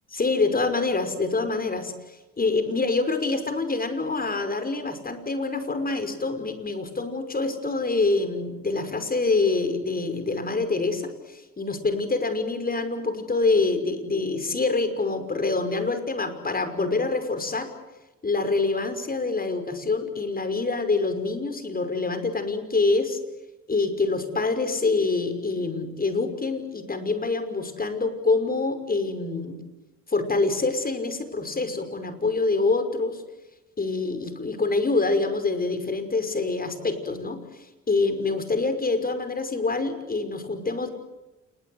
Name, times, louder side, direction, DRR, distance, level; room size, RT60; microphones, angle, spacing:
voice 1, 0.1-17.7 18.2-23.2 23.7-29.6 30.1-33.2 33.8-37.4 37.9-40.9, left 3 dB, 30° left, 9 dB, 5.7 m, -26 dB
28.5 x 22.0 x 8.0 m, 1.1 s
cardioid pair, 90°, 30 cm